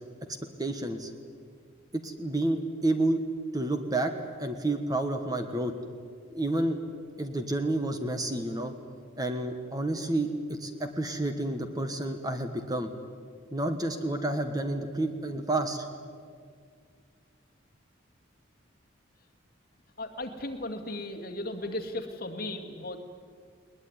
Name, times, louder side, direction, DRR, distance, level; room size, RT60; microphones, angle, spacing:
voice 1, 0.6-1.1 1.9-3.2 3.5-4.1 4.4-5.7 6.3-6.8 7.2-8.7 9.2-12.9 13.5-15.8, right 2 dB, 20° right, 7 dB, 1.3 m, -30 dB
voice 2, 20.0-23.0, left 1 dB, 45° left, 4 dB, 2.2 m, -36 dB
20.5 x 20.0 x 9.7 m, 2.1 s
head